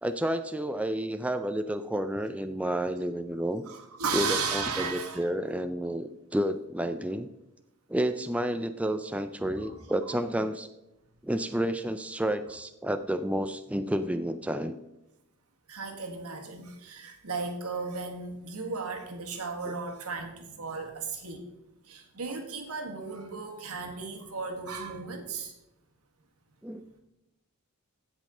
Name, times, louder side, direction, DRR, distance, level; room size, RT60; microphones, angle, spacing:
voice 1, 0.0-3.6 4.1-7.3 7.9-10.7 11.2-14.7 19.7-19.8 26.6-26.8, right 1 dB, 5° right, 9 dB, 0.3 m, -30 dB
voice 2, 3.6-5.3 9.6-10.2 15.7-21.5 21.8-25.5, right 4 dB, 90° right, 3 dB, 1.6 m, -35 dB
16.0 x 5.3 x 3.8 m, 0.92 s
head